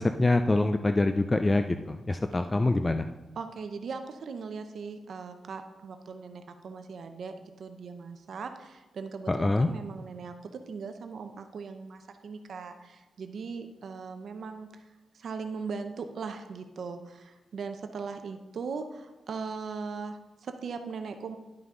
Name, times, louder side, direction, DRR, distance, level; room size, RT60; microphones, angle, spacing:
voice 1, 0.0-3.1 9.3-9.7, left 2 dB, 20° left, 8 dB, 0.3 m, -25 dB
voice 2, 3.4-14.9 15.1-21.4, right 5 dB, 60° right, 7 dB, 0.6 m, -39 dB
11.0 x 5.8 x 3.7 m, 1.1 s
wide cardioid pair, 145°, 0 cm